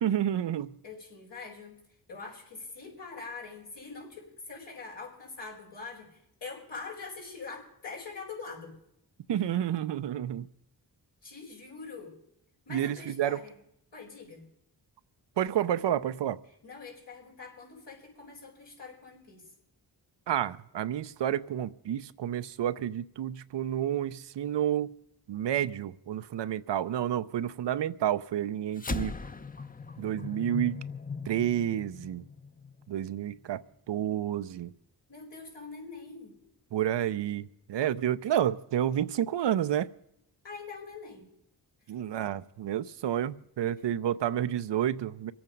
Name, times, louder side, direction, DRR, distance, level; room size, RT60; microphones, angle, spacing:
voice 1, 0.0-0.7 9.3-10.5 12.7-13.4 15.4-16.4 20.3-24.9 25.3-29.1 30.0-30.8 31.3-32.3 32.9-34.7 36.7-39.9 41.9-45.3, right 11 dB, 85° right, 0.6 m, -30 dB
voice 2, 0.8-1.8 2.1-8.8 11.2-12.2 12.7-13.6 13.9-14.5 16.6-19.4 35.1-36.4 40.4-41.3 41.8-41.9 43.8-43.9, left 4 dB, 85° left, 4.6 m, -44 dB
sound 1, 28.7-33.4, left 4 dB, 20° left, 0.7 m, -39 dB
24.5 x 8.7 x 5.2 m
cardioid pair, 50°, 42 cm